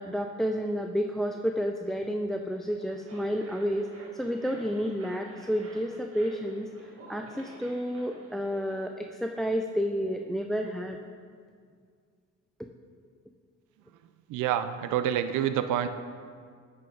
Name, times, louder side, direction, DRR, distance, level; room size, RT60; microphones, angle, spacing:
voice 1, 0.0-3.9 4.1-6.7 7.1-11.0, equal, ahead, 4 dB, 0.3 m, -30 dB
sound 1, 2.6-8.8, right 2 dB, 50° right, 1.8 m, -51 dB
voice 2, 14.3-15.9, right 10 dB, 90° right, 10 dB, 0.5 m, -27 dB
9.7 x 5.9 x 3.9 m, 2.1 s
cardioid pair, 90°, 30 cm